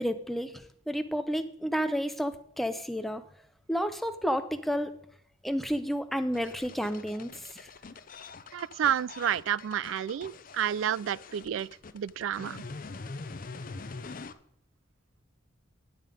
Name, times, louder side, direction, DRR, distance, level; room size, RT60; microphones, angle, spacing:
voice 1, 0.0-3.2 3.7-4.9 5.4-7.7, equal, ahead, 0.6 m, -31 dB
sound 1, 6.3-14.3, left 4 dB, 45° left, 0.6 m, -44 dB
voice 2, 8.5-11.7 11.9-12.6, right 9 dB, 80° right, 0.3 m, -30 dB
11.0 x 7.6 x 5.1 m
head